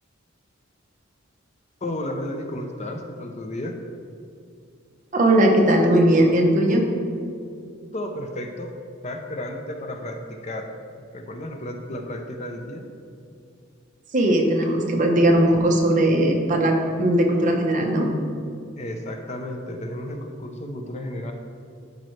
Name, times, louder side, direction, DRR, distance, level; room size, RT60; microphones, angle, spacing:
voice 1, 1.8-3.8 7.9-8.7 9.0-10.7 11.1-12.8 18.8-21.3, left 1 dB, 35° left, 4 dB, 0.6 m, -32 dB
voice 2, 5.1-6.9 14.1-18.1, right 1 dB, 40° right, 1 dB, 0.9 m, -18 dB
12.0 x 5.2 x 3.2 m, 2.4 s
head